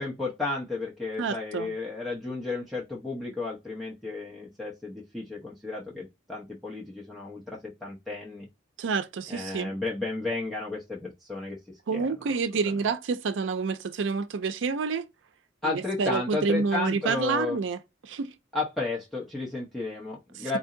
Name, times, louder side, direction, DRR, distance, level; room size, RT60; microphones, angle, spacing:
voice 1, 0.0-8.4 9.3-11.6 11.9-12.1 15.6-17.6 18.5-20.6, left 3 dB, ahead, 0.9 m, -33 dB
voice 2, 1.2-1.8 8.8-9.7 11.9-15.1 15.6-18.3 20.3-20.6, right 5 dB, 85° right, 0.5 m, -28 dB
4.2 x 2.7 x 3.8 m
head